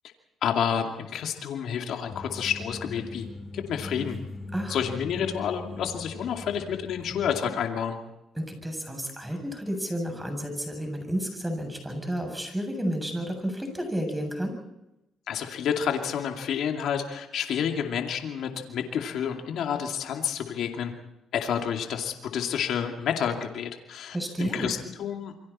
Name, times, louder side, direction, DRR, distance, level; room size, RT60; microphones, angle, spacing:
voice 1, 0.4-3.3 3.5-4.2 4.7-8.0 15.3-20.9 21.3-25.3, left 8 dB, 75° left, 3 dB, 2.4 m, -29 dB
sound 1, 2.1-7.4, left 2 dB, 40° left, 5.2 m, -40 dB
voice 2, 8.3-14.5 24.1-24.7, equal, 10° right, 4 dB, 7.6 m, -31 dB
28.0 x 24.0 x 4.3 m, 0.91 s
cardioid pair, 90°, 0 cm